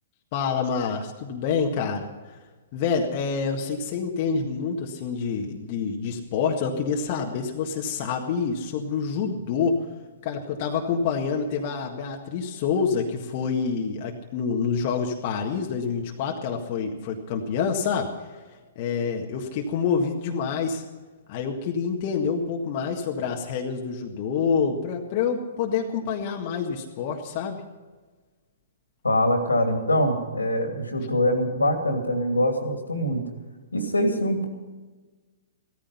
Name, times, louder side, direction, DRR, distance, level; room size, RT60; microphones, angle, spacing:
voice 1, 0.3-2.4 2.7-9.9 10.2-18.1 18.8-20.8 21.3-27.6, left 6 dB, 40° left, 1 dB, 1.7 m, -27 dB
voice 2, 29.0-33.2 33.7-34.5, left 1 dB, 80° left, 5 dB, 3.0 m, -23 dB
16.5 x 14.5 x 5.6 m, 1.3 s
figure-of-eight pair, 115°, 0 cm